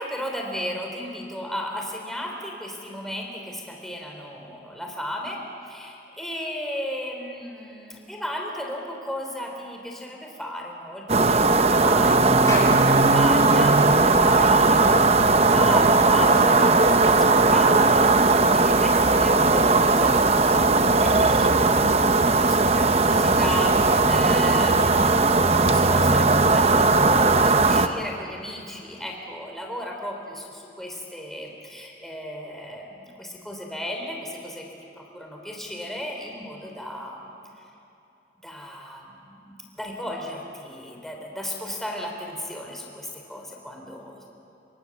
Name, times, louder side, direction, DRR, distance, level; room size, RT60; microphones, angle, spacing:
voice 1, 0.0-34.6 34.9-37.2 38.4-44.2, equal, ahead, 0 dB, 3.3 m, -35 dB
sound 1, 11.1-27.9, right 3 dB, 35° right, 0.8 m, -18 dB
Clapping, 12.5-17.1, left 2 dB, 20° left, 3.9 m, -39 dB
27.5 x 24.0 x 7.2 m, 2.8 s
head